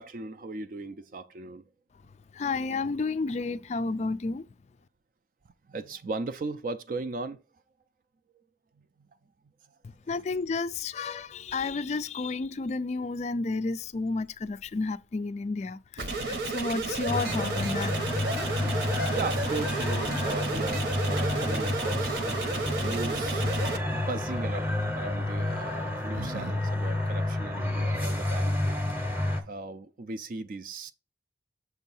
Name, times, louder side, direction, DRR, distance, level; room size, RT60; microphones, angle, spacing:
voice 1, 0.0-1.6 5.7-7.4 8.8-9.1 9.7-9.8 10.1-10.2 19.1-23.4 23.9-28.5 29.4-30.9, right 3 dB, 45° right, 0.4 m, -37 dB
voice 2, 2.3-4.4 10.1-17.9, left 3 dB, 35° left, 0.3 m, -31 dB
sound 1, 16.0-23.8, right 3 dB, 65° right, 1.0 m, -32 dB
sound 2, 17.1-29.4, left 1 dB, 10° right, 0.8 m, -30 dB
sound 3, 24.1-24.5 25.5-26.6 26.8-26.9 28.6-28.7 28.9-29.3, right 3 dB, 85° right, 1.3 m, -42 dB
6.9 x 2.7 x 5.4 m
head